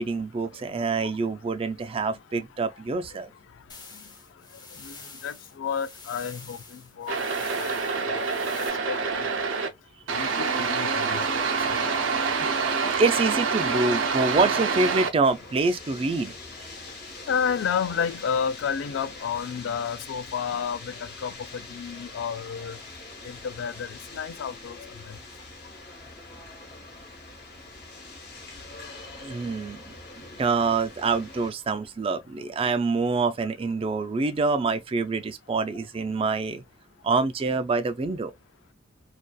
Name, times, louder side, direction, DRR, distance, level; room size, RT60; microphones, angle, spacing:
voice 1, 0.0-3.3 12.2-16.3 29.2-30.0 30.4-36.6 37.0-38.3, right 3 dB, 30° right, 0.3 m, -26 dB
sound 1, 3.7-8.7, left 4 dB, 20° left, 0.6 m, -46 dB
voice 2, 5.2-7.2 7.6-7.7 8.1-8.3 8.5-9.5 10.1-11.4 16.1-16.3 17.3-22.8 23.2-25.2, left 7 dB, 70° left, 0.3 m, -31 dB
sound 2, 7.1-9.7 10.1-15.1, right 5 dB, 85° right, 0.5 m, -26 dB
sound 3, 15.2-31.5, left 3 dB, 55° left, 1.0 m, -43 dB
2.6 x 2.3 x 2.2 m
head